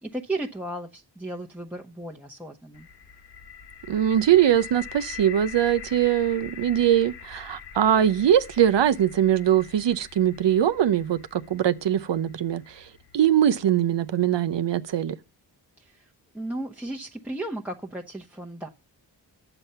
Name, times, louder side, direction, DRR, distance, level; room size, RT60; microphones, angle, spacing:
voice 1, 0.0-2.9 15.8-18.7, right 1 dB, 5° right, 0.9 m, -35 dB
sound 1, 2.7-14.6, left 7 dB, 65° left, 1.4 m, -44 dB
voice 2, 3.9-12.8 13.1-15.2, right 10 dB, 80° right, 0.7 m, -22 dB
9.0 x 7.0 x 5.5 m
cardioid pair, 55°, 43 cm